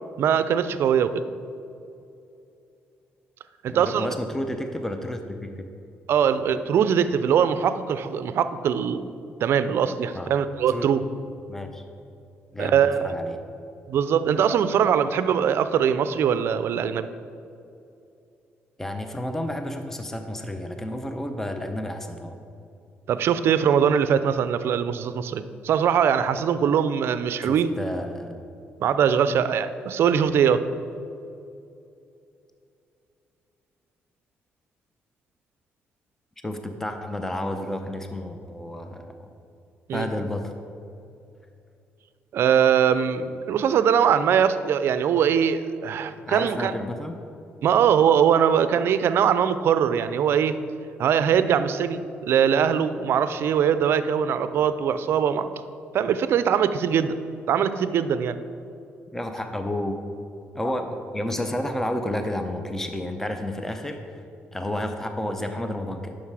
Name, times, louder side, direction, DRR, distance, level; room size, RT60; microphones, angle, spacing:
voice 1, 0.2-1.2 3.6-4.1 6.1-9.1 9.4-11.0 12.6-13.1 13.9-17.1 23.1-27.7 28.8-30.6 39.9-40.1 42.3-46.7 47.6-50.6 51.0-55.5 55.9-57.1 57.5-58.4, right 8 dB, 65° right, 12 dB, 0.5 m, -22 dB
voice 2, 3.7-5.7 10.1-10.3 10.7-10.9 11.5-11.8 12.5-13.4 18.8-22.4 27.4-28.4 36.4-39.3 39.9-40.5 46.2-47.2 59.1-60.0 60.5-64.2 64.5-66.2, left 1 dB, 10° left, 6 dB, 0.6 m, -31 dB
9.6 x 6.5 x 4.8 m, 2.7 s
cardioid pair, 105°, 4 cm